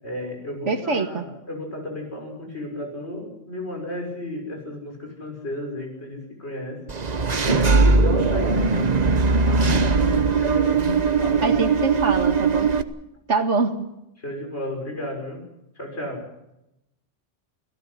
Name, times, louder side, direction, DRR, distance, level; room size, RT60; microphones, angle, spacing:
voice 1, 0.0-6.8 7.4-9.0 9.3-11.6 14.2-15.5 15.7-16.3, left 1 dB, 65° left, 1 dB, 6.8 m, -33 dB
voice 2, 0.7-1.2 11.4-12.7 13.3-13.9, right 4 dB, 85° right, 6 dB, 2.2 m, -24 dB
Engine / Mechanisms, 6.9-12.8, right 4 dB, 40° right, 1.0 m, -20 dB
29.0 x 18.0 x 5.9 m, 0.87 s
omnidirectional pair, 1.2 m